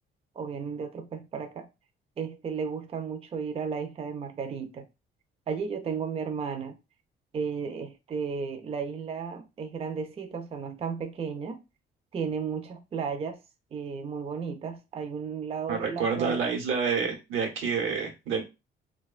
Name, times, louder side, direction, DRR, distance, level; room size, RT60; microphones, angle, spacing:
voice 1, 0.4-1.7 2.2-4.9 5.5-6.8 7.3-11.6 12.1-13.4 13.7-16.4, right 6 dB, 30° right, 0.4 m, -34 dB
voice 2, 15.7-18.4, right 5 dB, 90° right, 0.9 m, -28 dB
2.9 x 2.2 x 2.3 m
cardioid pair, 90°, 20 cm